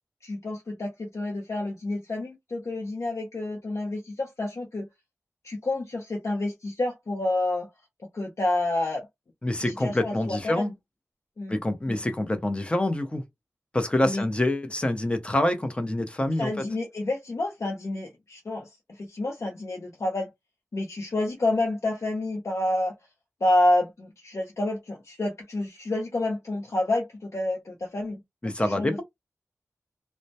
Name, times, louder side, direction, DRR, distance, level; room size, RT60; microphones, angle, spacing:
voice 1, 0.2-4.9 5.4-7.7 8.1-9.1 9.7-10.7 11.4-11.6 11.9-12.0 14.0-14.2 16.4-20.3 20.7-22.9 23.4-29.0, left 2 dB, 60° left, 0.7 m, -29 dB
voice 2, 9.4-10.7 11.5-13.2 13.7-16.5 28.4-29.0, left 1 dB, 20° left, 0.6 m, -26 dB
2.1 x 2.1 x 2.7 m
wide cardioid pair, 70°, 6 cm